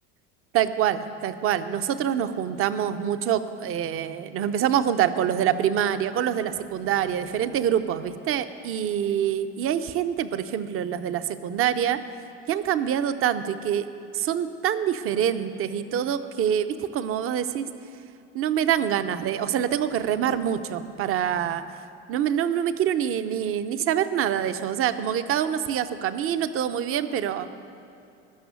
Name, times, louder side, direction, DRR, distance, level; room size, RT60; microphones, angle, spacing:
voice 1, 0.5-12.0 12.5-13.9 14.1-17.7 18.3-21.6 22.1-27.5, right 9 dB, 40° right, 11 dB, 0.7 m, -25 dB
13.0 x 6.1 x 9.4 m, 2.7 s
hypercardioid pair, 85°, 35 cm